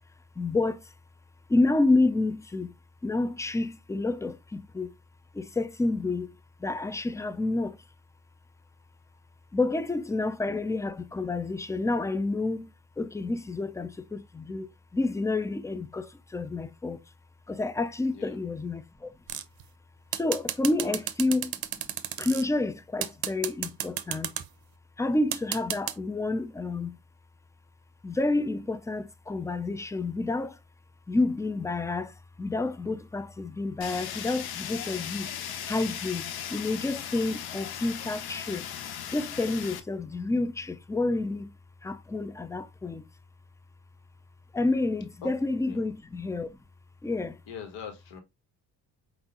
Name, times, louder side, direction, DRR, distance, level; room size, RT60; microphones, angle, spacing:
voice 1, 0.4-0.9 1.5-2.8 3.0-4.9 5.3-7.8 9.5-12.7 13.0-17.0 17.5-19.1 20.1-21.9 22.2-24.3 25.0-27.0 28.0-30.6 31.1-35.3 35.6-38.7 39.1-41.5 41.8-43.0 44.5-46.6 47.0-47.4, left 2 dB, 5° left, 0.4 m, -29 dB
sound 1, 19.3-19.6 20.1-22.4 23.0-24.5 25.3-25.9, right 11 dB, 55° right, 0.7 m, -32 dB
Fire, 33.8-39.8, left 9 dB, 55° left, 0.8 m, -37 dB
voice 2, 47.5-48.2, left 6 dB, 75° left, 1.4 m, -41 dB
5.3 x 2.7 x 2.8 m
supercardioid pair, 60°, 44 cm